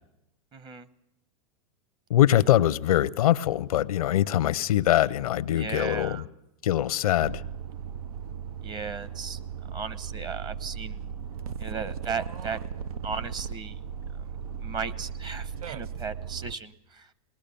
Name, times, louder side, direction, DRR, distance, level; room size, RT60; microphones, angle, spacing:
voice 1, 0.5-0.9 5.5-6.2 8.6-9.4 9.7-11.0 11.6-12.6 13.0-13.8 14.6-17.1, right 5 dB, 25° right, 0.9 m, -36 dB
voice 2, 2.1-6.3 6.6-7.4, left 12 dB, 85° left, 0.7 m, -23 dB
sound 1, 7.2-16.5, right 7 dB, 85° right, 0.7 m, -37 dB
21.5 x 19.5 x 6.9 m
hypercardioid pair, 125°, 18 cm